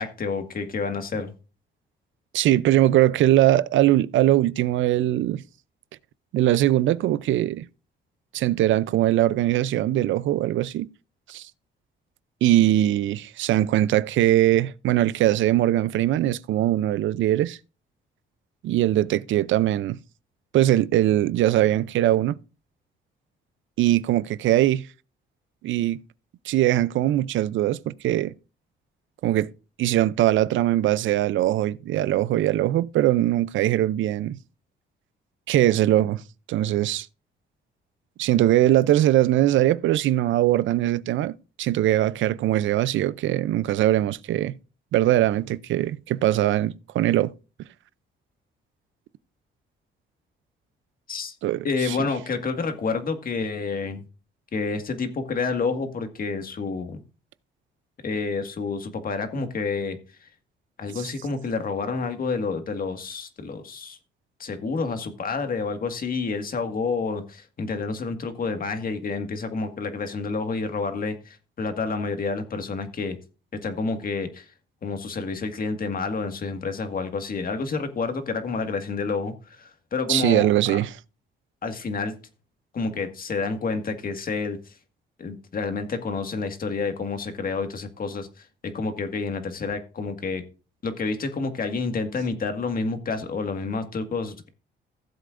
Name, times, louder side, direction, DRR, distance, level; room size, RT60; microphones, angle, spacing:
voice 1, 0.0-1.3 51.1-51.3 51.6-54.0 54.5-57.0 58.0-60.0 60.8-64.0 64.4-73.2 73.6-74.4 74.8-80.8 81.6-82.1 82.7-84.6 85.2-88.3 88.7-90.4 90.8-94.5, left 4 dB, 45° left, 1.8 m, -29 dB
voice 2, 2.3-5.4 6.3-7.7 8.3-10.9 11.3-11.5 12.4-17.6 18.6-20.0 20.5-22.4 23.8-24.9 25.6-26.0 26.5-28.3 29.2-29.5 29.8-34.4 35.5-36.2 36.5-37.1 38.2-44.6 44.9-47.3 51.4-52.0 61.0-61.1 80.1-80.9, right 13 dB, 75° right, 0.5 m, -21 dB
16.0 x 7.7 x 2.6 m
cardioid pair, 90°, 20 cm